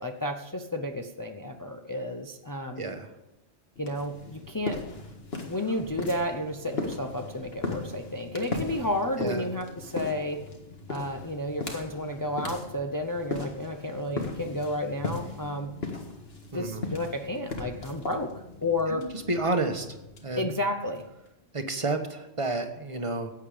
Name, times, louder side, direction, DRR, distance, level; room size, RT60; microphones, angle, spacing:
voice 1, 0.0-2.8 3.8-4.8 5.5-10.4 10.9-15.7 16.5-18.3 18.6-19.1 20.4-21.0, left 1 dB, 20° left, 4 dB, 0.7 m, -31 dB
voice 2, 2.8-3.1 9.2-9.5 16.5-16.9 18.9-19.9 20.2-20.5 21.5-23.3, right 2 dB, 30° right, 6 dB, 1.2 m, -30 dB
sound 1, 3.8-21.3, left 3 dB, 60° left, 2.0 m, -38 dB
16.0 x 8.8 x 5.1 m, 0.94 s
omnidirectional pair, 1.2 m